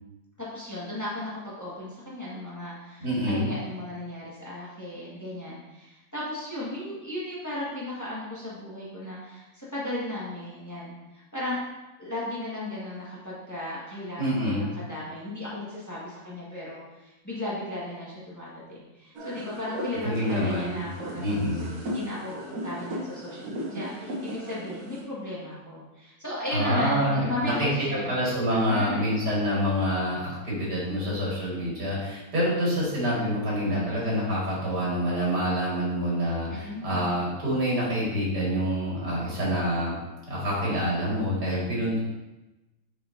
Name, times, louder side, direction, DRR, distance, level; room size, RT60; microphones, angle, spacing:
voice 1, 0.4-11.6 12.0-21.2 21.8-28.2 28.5-29.1 36.5-37.1, left 1 dB, 10° left, -8 dB, 1.5 m, -35 dB
voice 2, 3.0-3.5 14.2-14.7 20.0-20.8 21.2-21.8 26.5-27.7 28.1-40.0 40.3-42.0, equal, 90° right, -6 dB, 2.6 m, -27 dB
sound 1, 19.2-25.0, equal, 65° right, 1.4 m, -37 dB
6.5 x 5.5 x 2.7 m, 1.0 s
omnidirectional pair, 1.7 m